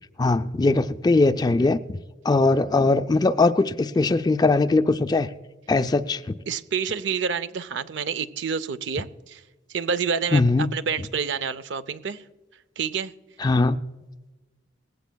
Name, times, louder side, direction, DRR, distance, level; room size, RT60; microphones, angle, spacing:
voice 1, 0.2-2.0 2.2-5.3 5.7-6.4 10.3-10.7 13.4-13.8, left 3 dB, 20° left, 0.3 m, -20 dB
voice 2, 6.5-9.4 9.7-12.2 12.8-13.1, right 6 dB, 65° right, 0.5 m, -28 dB
19.0 x 15.5 x 2.2 m
head